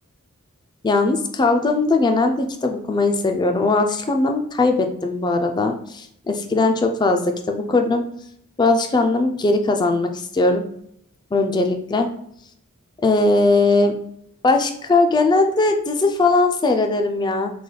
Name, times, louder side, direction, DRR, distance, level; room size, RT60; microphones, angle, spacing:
voice 1, 0.8-8.0 8.6-10.6 11.3-12.1 13.0-14.0 14.4-17.5, left 3 dB, 20° left, 5 dB, 0.3 m, -19 dB
3.2 x 2.2 x 3.8 m, 0.69 s
head